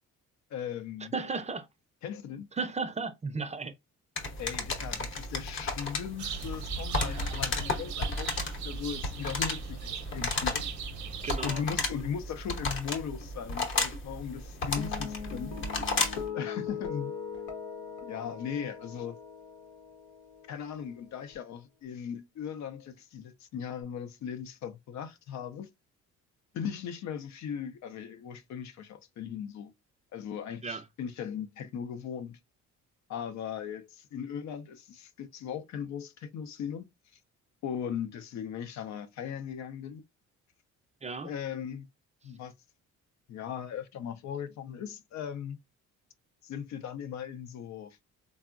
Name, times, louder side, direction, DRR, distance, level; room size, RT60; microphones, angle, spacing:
voice 1, 0.5-1.1 2.0-2.5 4.4-8.4 8.6-10.7 11.4-15.5 16.3-17.1 18.0-19.2 20.5-25.7 26.5-29.7 30.1-32.4 33.1-36.9 37.6-40.0 41.2-41.9 42.2-42.5 43.3-45.6 46.4-48.0, left 8 dB, 65° left, 0.5 m, -38 dB
voice 2, 1.1-1.7 2.6-3.7 11.2-11.6 30.6-30.8 41.0-41.3, right 4 dB, 25° right, 0.4 m, -34 dB
sound 1, 4.2-16.3, left 2 dB, 40° left, 0.8 m, -33 dB
sound 2, 6.2-11.4, right 7 dB, 70° right, 0.7 m, -40 dB
sound 3, 14.8-21.3, left 7 dB, 90° left, 0.8 m, -41 dB
3.5 x 2.0 x 2.4 m
cardioid pair, 90°, 30 cm